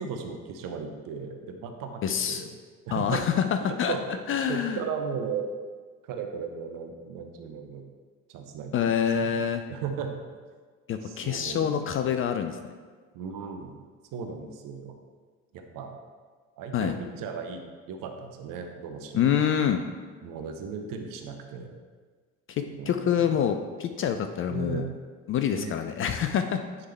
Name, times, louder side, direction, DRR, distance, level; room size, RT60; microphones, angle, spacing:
voice 1, 0.0-2.0 2.3-2.5 2.9-3.2 3.6-4.0 4.3-5.5 6.1-7.8 8.3-9.3 9.7-10.1 11.0-11.8 13.1-13.8 14.1-14.9 15.5-16.0 16.6-19.5 20.2-21.8 22.7-23.3 24.5-24.9 25.5-25.7, right 6 dB, 55° right, 5 dB, 0.8 m, -36 dB
voice 2, 2.0-2.4 2.9-4.0 4.3-4.8 8.7-9.6 10.9-12.7 16.7-17.0 19.1-19.9 22.5-24.9 25.3-26.6, left 8 dB, 35° left, 8 dB, 0.4 m, -26 dB
9.5 x 3.6 x 3.3 m, 1.5 s
figure-of-eight pair, 50°, 41 cm